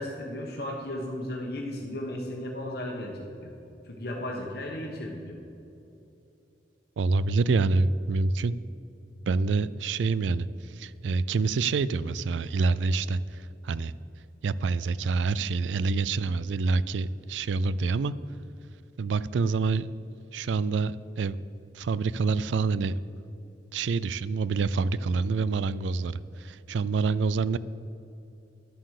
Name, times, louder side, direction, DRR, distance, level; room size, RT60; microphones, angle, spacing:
voice 1, 0.0-3.5 3.8-5.4, left 1 dB, 60° left, -1 dB, 1.2 m, -35 dB
voice 2, 7.0-8.5 9.3-10.5 10.8-13.2 13.6-13.9 14.4-18.1 19.0-19.9 20.3-21.4 21.7-23.0 23.7-27.6, right 4 dB, 85° right, 18 dB, 0.4 m, -26 dB
11.0 x 7.6 x 6.5 m, 2.8 s
head